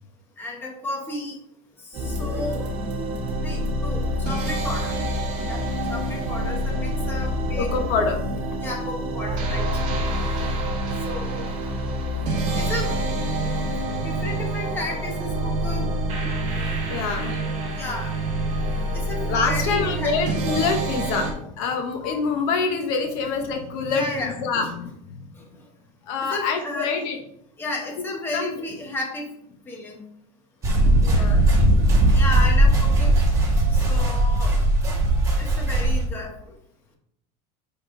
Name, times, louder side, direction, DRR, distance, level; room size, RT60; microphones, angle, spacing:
voice 1, 0.4-1.3 2.2-2.7 3.4-4.9 5.5-5.6 5.9-7.7 8.6-9.7 11.1-11.4 12.6-12.9 14.0-15.9 17.8-18.1 19.1-20.1 23.9-24.7 26.3-26.9 27.6-29.3 29.7-30.0 32.1-33.1 33.8-34.5 35.4-36.3, left 2 dB, 10° left, -1 dB, 1.0 m, -32 dB
sound 1, 1.9-21.3, right 1 dB, 35° right, 1.7 m, -27 dB
voice 2, 2.1-2.4 7.6-8.4 16.6-17.4 17.7-17.8 19.0-25.2 26.0-27.2 28.0-28.6 31.0-31.4, left 5 dB, 50° left, 5 dB, 0.9 m, -26 dB
sound 2, 30.6-36.0, right 1 dB, 15° right, 1.4 m, -18 dB
9.3 x 3.6 x 3.7 m, 0.73 s
cardioid pair, 180°, 20 cm